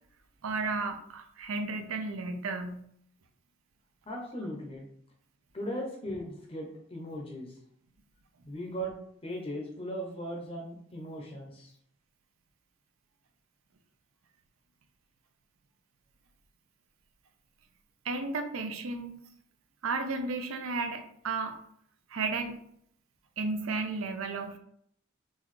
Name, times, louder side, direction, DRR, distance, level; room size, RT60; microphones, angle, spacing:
voice 1, 0.4-2.8 18.1-19.2 19.8-21.6 22.1-22.6 23.4-24.6, right 3 dB, 80° right, 7 dB, 0.5 m, -33 dB
voice 2, 4.1-4.9 5.5-7.5 8.5-9.0 9.2-11.7, equal, 25° left, 0 dB, 0.6 m, -38 dB
3.9 x 2.3 x 3.1 m, 0.67 s
head